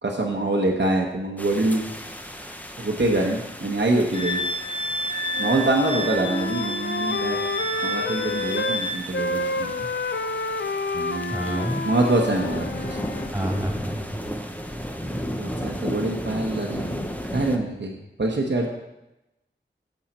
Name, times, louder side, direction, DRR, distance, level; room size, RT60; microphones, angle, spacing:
voice 1, 0.0-1.9 2.8-4.4 5.4-7.4 7.8-9.9 10.9-13.0 15.0-18.7, right 2 dB, 65° right, 0 dB, 1.0 m, -25 dB
sound 1, 1.4-17.6, equal, 10° left, 0.9 m, -35 dB
Wind instrument woodwind instrument, 4.1-9.0, equal, 35° right, 1.1 m, -30 dB
Wind instrument woodwind instrument 2, 5.3-8.8 9.1-13.3, left 3 dB, 65° left, 0.5 m, -29 dB
voice 2, 11.3-11.8 13.3-14.2, equal, 10° right, -1 dB, 2.8 m, -28 dB
8.7 x 6.5 x 4.2 m, 0.94 s
wide cardioid pair, 45°, 20 cm